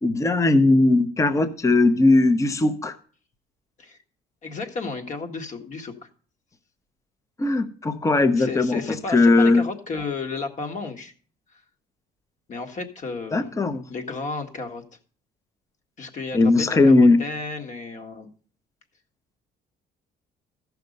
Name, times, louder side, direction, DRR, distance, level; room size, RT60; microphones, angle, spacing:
voice 1, 0.0-3.0 7.4-8.8 9.1-9.6 13.3-13.8 16.3-17.2, left 2 dB, 20° left, 11 dB, 0.8 m, -18 dB
voice 2, 4.4-6.1 8.4-11.1 11.5-11.6 12.5-13.6 13.9-14.8 16.0-18.3, left 4 dB, 45° left, 5 dB, 1.7 m, -33 dB
14.5 x 5.9 x 5.3 m, 0.42 s
cardioid pair, 110°, 17 cm